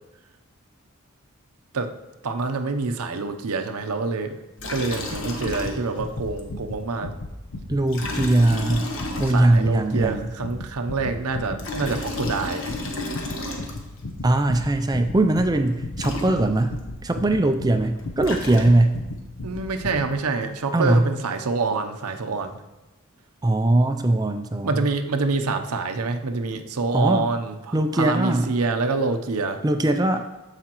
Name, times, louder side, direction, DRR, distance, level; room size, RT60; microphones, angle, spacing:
voice 1, 2.2-4.4 4.7-7.1 9.3-12.7 19.4-22.5 24.6-29.6, right 3 dB, 90° right, 7 dB, 0.7 m, -26 dB
Liquid, 4.6-6.1 6.4-6.5 7.9-9.8 11.4-14.1 15.7-15.8 16.0-16.8 18.0-19.1, left 2 dB, 60° left, 1.2 m, -32 dB
sound 1, 5.1-20.1, left 2 dB, 80° left, 0.7 m, -36 dB
voice 2, 7.7-8.9 9.2-10.3 14.2-19.0 20.7-21.1 23.4-24.8 26.9-27.3 27.7-28.5 29.6-30.3, right 1 dB, 15° right, 7 dB, 0.4 m, -20 dB
13.5 x 4.9 x 3.0 m, 1.1 s
head